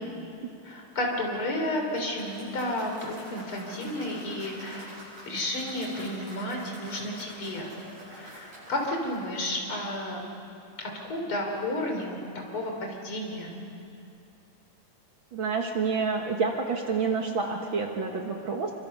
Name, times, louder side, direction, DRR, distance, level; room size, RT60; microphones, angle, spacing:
voice 1, 0.6-4.9 5.3-7.7 8.2-10.2 10.8-12.2 12.5-13.6, left 1 dB, 40° left, 1 dB, 4.0 m, -32 dB
Applause / Crowd, 1.7-9.9, equal, 70° right, 9.6 m, -47 dB
voice 2, 15.3-18.7, right 4 dB, 50° right, 2 dB, 1.7 m, -28 dB
26.5 x 25.0 x 5.5 m, 2.6 s
omnidirectional pair, 3.6 m